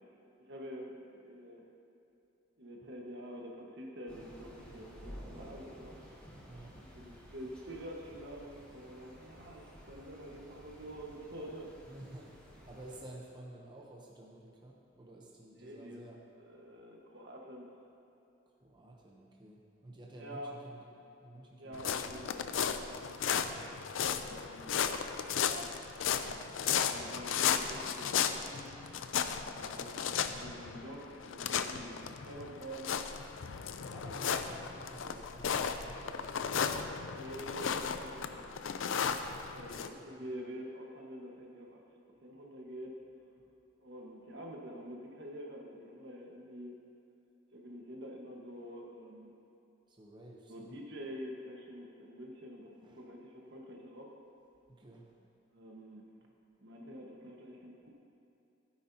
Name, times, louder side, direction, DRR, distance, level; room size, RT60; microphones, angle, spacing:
voice 1, 0.4-1.6 2.6-6.0 6.7-12.0 15.5-16.1 16.4-17.7 20.2-20.6 21.6-22.8 24.2-24.7 25.3-25.8 26.1-26.5 26.8-28.7 29.5-33.0 37.1-38.5 39.5-41.8 42.2-43.0 43.8-46.8 47.5-49.3 50.5-54.1 55.5-56.0 56.6-57.9, equal, 65° right, 0 dB, 1.4 m, -47 dB
Thunder / Rain, 4.1-13.0, equal, 5° left, 2.4 m, -53 dB
voice 2, 6.4-6.8 11.9-16.2 18.6-20.9 21.2-22.0 23.4-23.7 24.1-24.4 29.4-29.7 33.9-36.5 39.7-40.3 49.9-50.8 52.8-53.0 54.7-55.1, right 1 dB, 25° right, -2 dB, 0.8 m, -52 dB
sound 1, 21.7-39.9, left 7 dB, 90° left, 0.5 m, -35 dB
15.5 x 9.9 x 2.8 m, 2.7 s
head